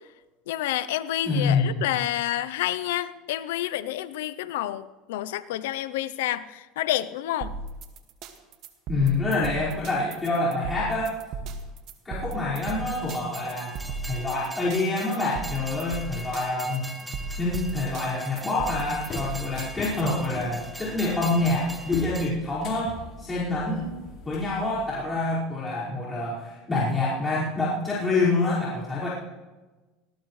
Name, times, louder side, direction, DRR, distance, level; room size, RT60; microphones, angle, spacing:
voice 1, 0.5-7.5, left 13 dB, 85° left, 14 dB, 0.7 m, -29 dB
voice 2, 1.2-1.8 8.9-11.2 12.0-13.8 14.1-16.9 17.4-23.9 24.2-29.1, left 2 dB, 20° left, -9 dB, 5.1 m, -26 dB
sound 1, 7.4-20.3, right 3 dB, 55° right, 1.9 m, -36 dB
Train, 12.6-22.3, right 1 dB, 5° right, 1.7 m, -41 dB
sound 2, 18.9-25.1, left 3 dB, 45° left, 4.5 m, -40 dB
19.5 x 18.5 x 3.2 m, 1.2 s
supercardioid pair, 110°, 0 cm